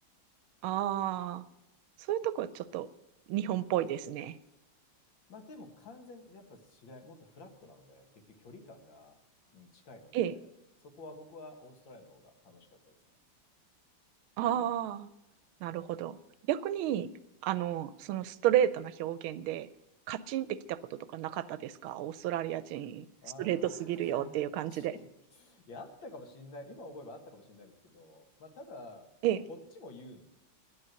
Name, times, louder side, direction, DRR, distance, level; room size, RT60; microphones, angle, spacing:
voice 1, 0.6-1.4 2.1-2.9 3.3-4.3 10.1-10.3 14.4-15.1 15.6-16.2 16.5-17.1 17.4-19.7 20.1-23.1 23.4-24.9 29.2-29.4, right 11 dB, 80° right, 16 dB, 1.4 m, -32 dB
voice 2, 4.9-9.2 9.5-10.4 10.8-13.0 23.2-24.3 24.7-29.1 29.5-30.2, left 2 dB, 65° left, 5 dB, 2.3 m, -50 dB
11.5 x 8.9 x 7.9 m, 0.93 s
omnidirectional pair, 2.3 m